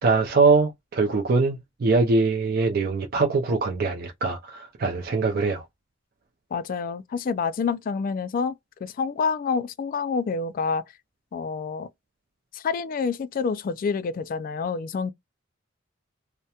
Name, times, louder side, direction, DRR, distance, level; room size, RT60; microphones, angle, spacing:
voice 1, 0.0-5.6, right 4 dB, 50° right, 0.4 m, -22 dB
voice 2, 6.5-8.5 8.8-10.8 11.3-11.9 12.5-15.1, left 5 dB, 45° left, 0.3 m, -27 dB
2.8 x 2.0 x 2.3 m
head